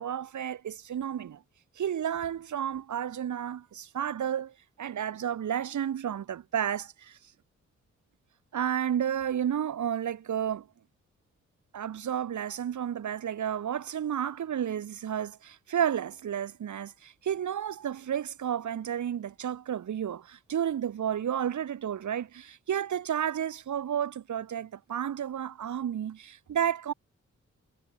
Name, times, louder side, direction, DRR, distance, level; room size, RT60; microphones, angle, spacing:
voice 1, 0.0-1.4 1.8-7.2 8.5-10.7 11.7-26.9, right 9 dB, 75° right, 2.4 m, -32 dB
cardioid pair, 55°, 29 cm